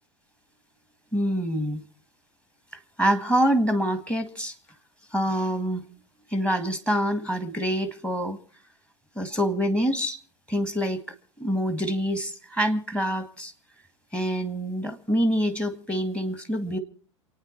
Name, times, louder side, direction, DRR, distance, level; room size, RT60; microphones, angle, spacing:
voice 1, 1.1-1.8 3.0-4.5 5.1-5.8 6.3-8.4 9.2-10.2 10.5-11.0 11.4-13.5 14.1-16.8, equal, 5° left, 11 dB, 1.7 m, -26 dB
28.0 x 9.4 x 4.5 m, 0.41 s
figure-of-eight pair, 85°, 16 cm